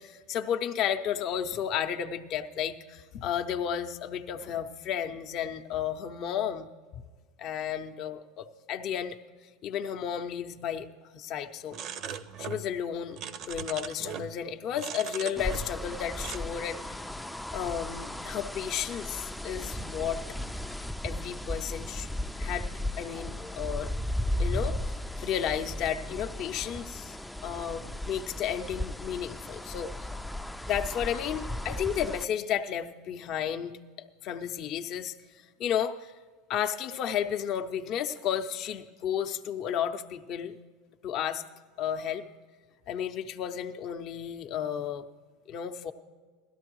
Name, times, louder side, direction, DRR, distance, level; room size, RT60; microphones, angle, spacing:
voice 1, 0.0-6.7 7.4-9.2 9.4-10.9 11.1-11.8 12.4-17.0 17.5-20.2 21.0-22.1 22.4-22.7 23.0-23.9 24.4-27.2 27.4-30.1 30.7-36.1 36.5-40.5 41.0-41.4 41.8-42.2 42.9-45.1 45.5-45.9, left 9 dB, 50° left, 6 dB, 0.6 m, -33 dB
sound 1, 11.7-12.7 12.9-14.3 14.7-15.9 16.2-16.4, right 7 dB, 50° right, 0.6 m, -39 dB
sound 2, 15.4-32.2, left 1 dB, 5° left, 0.3 m, -36 dB
17.0 x 12.5 x 3.1 m, 1.4 s
supercardioid pair, 105°, 0 cm